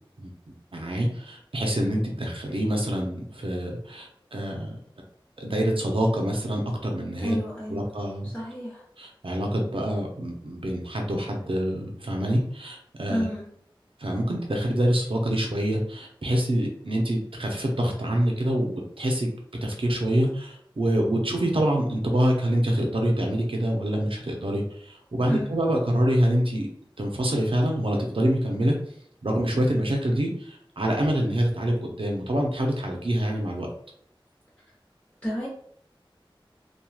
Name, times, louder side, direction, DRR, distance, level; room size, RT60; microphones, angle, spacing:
voice 1, 0.2-4.8 5.4-7.4 7.7-8.3 9.0-13.3 14.0-19.3 19.6-26.7 27.0-28.8 29.2-33.7, right 1 dB, 75° right, 1 dB, 0.6 m, -26 dB
voice 2, 7.2-7.9 8.2-8.8 13.1-13.5 25.2-25.5 35.2-35.5, equal, 15° left, -7 dB, 0.9 m, -30 dB
3.0 x 2.3 x 2.3 m, 0.66 s
wide cardioid pair, 45°, 9 cm